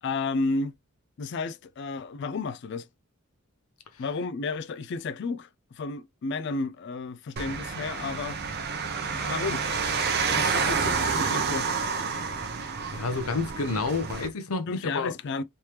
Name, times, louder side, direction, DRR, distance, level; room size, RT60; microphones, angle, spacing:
voice 1, 0.0-0.7 1.2-2.9 4.0-8.7 9.1-9.7 10.3-11.7 14.7-15.4, left 3 dB, 50° left, 0.3 m, -32 dB
sound 1, 7.4-14.3, right 5 dB, 45° right, 0.6 m, -29 dB
voice 2, 12.9-15.1, left 3 dB, 80° left, 0.7 m, -29 dB
3.2 x 3.2 x 2.8 m
head